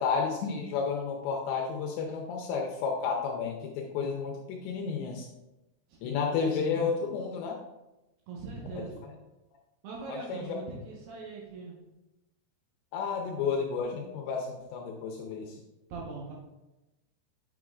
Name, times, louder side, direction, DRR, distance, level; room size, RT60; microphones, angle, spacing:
voice 1, 0.0-5.3 6.0-7.6 8.8-8.9 10.1-10.6 12.9-15.6, left 5 dB, 80° left, 1 dB, 2.6 m, -31 dB
voice 2, 8.3-9.1 9.8-11.8 15.9-16.3, right 3 dB, 70° right, -3 dB, 2.7 m, -41 dB
9.2 x 6.0 x 2.4 m, 1.0 s
omnidirectional pair, 5.5 m